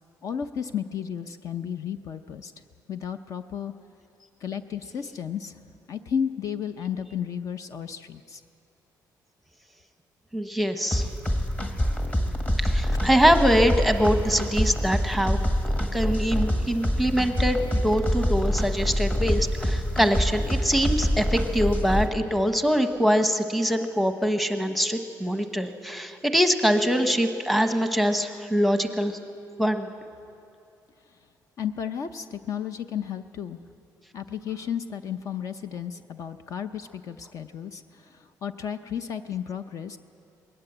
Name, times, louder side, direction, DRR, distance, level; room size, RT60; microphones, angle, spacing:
voice 1, 0.2-2.5 2.9-3.7 4.4-5.5 5.9-8.4 31.6-33.6 34.1-40.0, left 8 dB, 50° left, 9 dB, 0.6 m, -33 dB
voice 2, 10.3-11.1 12.6-15.4 15.9-29.2 29.6-29.9, equal, ahead, 7 dB, 1.0 m, -23 dB
sound 1, 10.9-22.1, equal, 20° left, 1.5 m, -26 dB
21.0 x 18.5 x 8.0 m, 2.6 s
cardioid pair, 155°, 7 cm